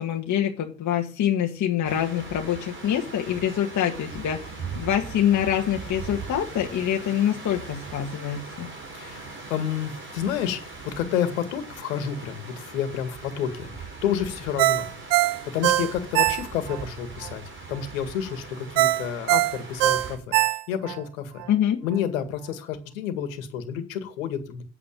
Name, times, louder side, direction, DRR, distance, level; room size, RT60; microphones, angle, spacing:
voice 1, 0.0-8.7 21.5-21.8, left 10 dB, 45° left, 2 dB, 1.8 m, -25 dB
sound 1, 1.8-20.2, right 4 dB, 30° right, 4.9 m, -40 dB
voice 2, 8.9-10.6 10.9-14.9 15.5-17.4 17.7-20.4 20.7-21.4 21.8-24.6, left 9 dB, 80° left, 10 dB, 2.1 m, -30 dB
Ringtone, 14.6-16.8 17.2-17.3 18.8-21.0 21.4-21.5, right 17 dB, 70° right, 0.9 m, -22 dB
8.6 x 8.1 x 9.0 m, 0.37 s
hypercardioid pair, 70°, 40 cm